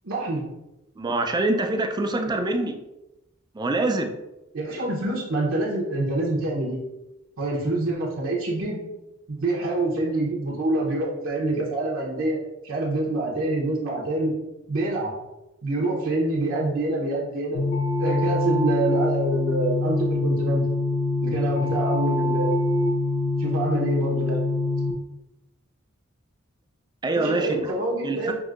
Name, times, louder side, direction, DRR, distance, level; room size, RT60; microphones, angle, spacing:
voice 1, 0.0-0.4 2.0-2.3 4.5-6.8 7.4-8.8 9.3-12.4 12.6-14.3 14.7-15.1 15.6-17.6 18.0-20.6 21.2-22.5 23.4-24.4 27.1-28.3, right 2 dB, 75° right, -4 dB, 0.9 m, -26 dB
voice 2, 1.0-2.7 3.6-4.1 27.0-27.7 28.0-28.3, right 2 dB, 20° right, 5 dB, 0.3 m, -25 dB
sound 1, 17.5-24.9, left 2 dB, 90° left, 0.7 m, -24 dB
6.0 x 2.7 x 2.5 m, 0.94 s
head